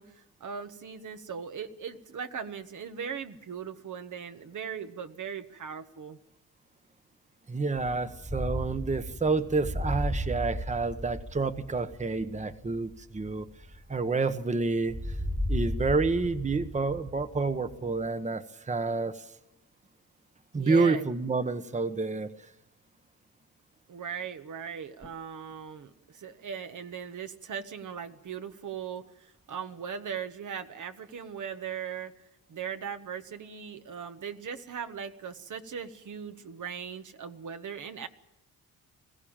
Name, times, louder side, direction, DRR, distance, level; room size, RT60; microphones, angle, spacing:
voice 1, 0.0-6.2 20.5-21.1 23.9-32.1 32.5-38.1, right 7 dB, 55° right, 8 dB, 1.4 m, -39 dB
voice 2, 7.5-13.5 13.9-15.2 15.5-19.2 20.5-22.5, right 3 dB, 20° right, 11 dB, 1.1 m, -29 dB
sound 1, 7.8-14.4 14.9-18.1, equal, ahead, 0.8 m, -35 dB
21.5 x 15.5 x 8.9 m, 0.90 s
cardioid pair, 80°, 35 cm